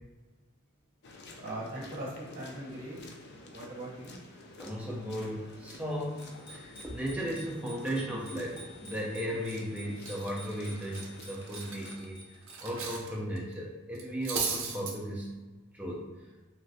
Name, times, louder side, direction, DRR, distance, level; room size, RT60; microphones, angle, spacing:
sound 1, 1.0-12.0, left 2 dB, 50° left, 0.4 m, -50 dB
voice 1, 1.4-3.0 3.5-4.2, right 1 dB, 40° right, -5 dB, 0.9 m, -40 dB
voice 2, 4.6-12.2 12.6-15.3 15.7-16.1, equal, 5° right, -3 dB, 0.4 m, -36 dB
Bicycle bell, 6.2-12.8, left 1 dB, 80° left, 1.3 m, -51 dB
Cutlery silverware, 9.4-9.6 10.0-13.1 13.4-13.5 13.9-14.9, right 5 dB, 65° right, 0.5 m, -37 dB
3.0 x 2.4 x 2.7 m, 1.2 s
head